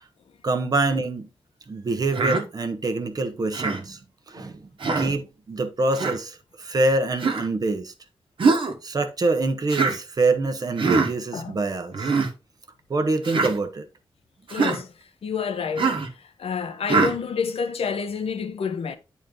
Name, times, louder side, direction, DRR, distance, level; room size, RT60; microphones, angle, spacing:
voice 1, 0.4-1.3 1.7-4.0 4.3-4.7 5.0-7.9 8.8-12.1 12.9-13.9, right 2 dB, 40° right, 1.0 m, -25 dB
Human voice, 2.1-2.4 3.5-3.8 4.8-5.1 5.9-6.2 7.2-7.5 8.4-8.7 9.7-10.0 10.8-11.1 11.9-12.3 13.2-13.5 14.5-14.8 15.8-16.1 16.9-17.2, right 4 dB, 60° right, 1.4 m, -22 dB
voice 2, 14.5-14.9 15.2-15.9 16.4-19.0, left 6 dB, 80° left, 1.0 m, -28 dB
9.1 x 4.2 x 3.8 m
wide cardioid pair, 155°, 10 cm